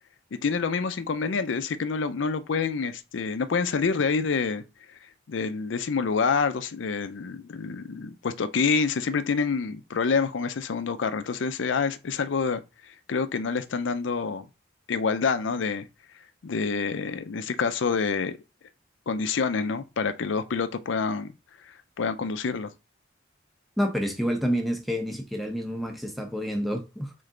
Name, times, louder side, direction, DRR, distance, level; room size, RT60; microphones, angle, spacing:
voice 1, 0.3-4.6 5.3-14.5 14.9-15.9 16.4-18.3 19.1-21.3 21.7-22.7, left 5 dB, 85° left, 0.5 m, -27 dB
voice 2, 23.8-27.1, equal, ahead, 0.7 m, -28 dB
3.8 x 3.3 x 3.7 m
head